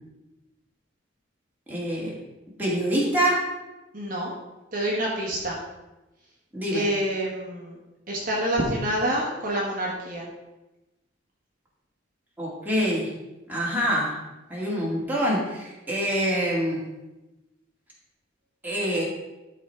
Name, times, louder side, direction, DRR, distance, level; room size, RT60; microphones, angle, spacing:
voice 1, 1.7-2.1 2.6-3.4 6.5-6.9 12.4-13.1 13.5-14.1 14.5-16.8 18.6-19.1, equal, 10° right, -5 dB, 2.1 m, -25 dB
voice 2, 3.9-4.3 4.7-5.6 6.7-7.8 8.1-10.3, right 1 dB, 45° right, -3 dB, 1.4 m, -27 dB
12.0 x 4.1 x 4.5 m, 1.0 s
head